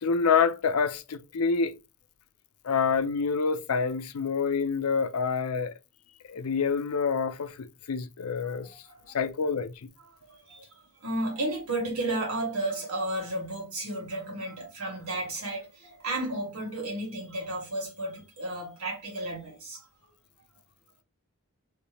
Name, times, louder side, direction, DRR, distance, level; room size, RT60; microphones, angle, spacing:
voice 1, 0.0-1.7 2.6-5.7 6.3-8.7 9.1-9.7, left 5 dB, 80° left, 0.5 m, -27 dB
voice 2, 8.8-9.2 10.2-19.9, right 1 dB, 75° right, 1.8 m, -33 dB
3.1 x 3.0 x 3.3 m
head